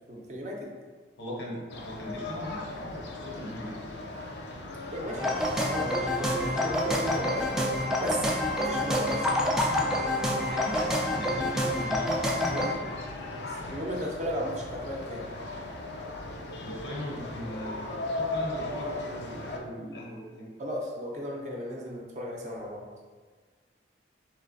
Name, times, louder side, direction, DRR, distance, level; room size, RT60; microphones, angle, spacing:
voice 1, 0.1-0.7 1.2-1.3 3.2-3.5 4.9-8.3 8.6-9.2 12.5-12.7 13.3-15.2 20.6-22.8, equal, 40° right, -2 dB, 0.7 m, -36 dB
voice 2, 1.2-3.8 10.3-13.1 16.6-20.5, equal, 90° left, -3 dB, 1.1 m, -40 dB
sound 1, 1.7-19.6, left 2 dB, 70° left, 0.5 m, -38 dB
sound 2, 5.2-12.7, left 1 dB, 5° right, 0.3 m, -28 dB
3.2 x 3.2 x 3.9 m, 1.5 s
head